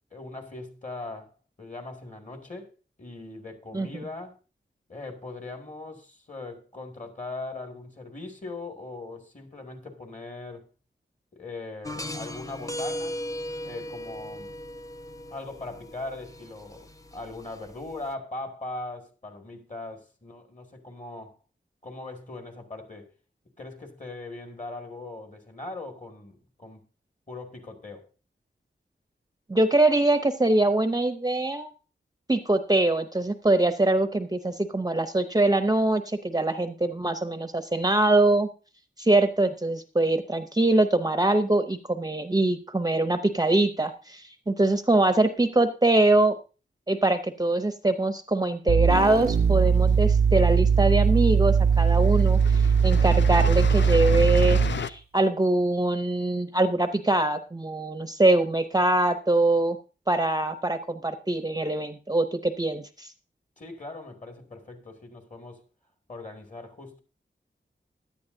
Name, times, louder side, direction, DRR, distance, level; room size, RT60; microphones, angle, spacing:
voice 1, 0.1-1.3 1.6-2.7 3.0-4.4 4.9-10.7 11.3-13.2 13.6-14.5 15.3-21.4 21.8-23.1 23.6-26.8 27.3-28.1 63.6-65.6 66.1-67.0, left 2 dB, 40° left, 2.2 m, -40 dB
sound 1, 11.8-18.1, left 1 dB, 15° left, 0.6 m, -37 dB
voice 2, 29.5-31.7 32.3-38.5 39.0-46.4 46.9-59.8 60.1-63.1, right 2 dB, 20° right, 0.6 m, -23 dB
sound 2, 48.7-54.8, right 6 dB, 60° right, 0.4 m, -20 dB
sound 3, 49.5-50.4 51.3-51.4 51.7-54.9, left 7 dB, 70° left, 0.5 m, -34 dB
16.0 x 10.5 x 2.7 m
wide cardioid pair, 75°, 19 cm